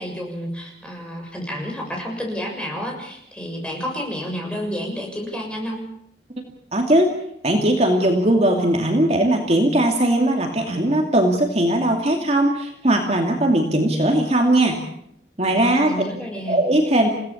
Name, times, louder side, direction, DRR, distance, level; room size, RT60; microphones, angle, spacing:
voice 1, 0.0-5.8 15.5-16.6, equal, 5° left, 0 dB, 6.9 m, -30 dB
voice 2, 6.7-7.1 7.4-14.8 15.4-15.9 16.5-17.1, right 1 dB, 35° right, 2 dB, 2.5 m, -19 dB
30.0 x 17.5 x 7.2 m, 0.73 s
head